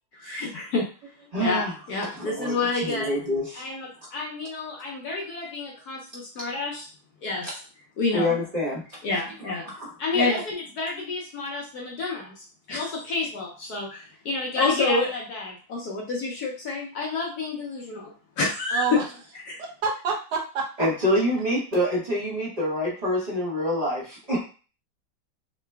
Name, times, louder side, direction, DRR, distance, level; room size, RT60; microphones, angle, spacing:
voice 1, 0.2-0.9 1.4-3.1 3.6-6.9 7.2-7.5 8.0-8.3 9.0-9.7 10.0-18.1 18.4-19.0 19.5-19.6, left 3 dB, 65° left, -1 dB, 1.1 m, -28 dB
voice 2, 1.3-1.7 2.0-3.6 8.1-9.0 9.7-9.9 20.8-24.4, equal, 30° right, -6 dB, 0.8 m, -26 dB
voice 3, 18.7-19.1 19.6-20.9, right 5 dB, 70° right, -1 dB, 1.2 m, -29 dB
3.8 x 2.1 x 3.3 m, 0.36 s
omnidirectional pair, 2.1 m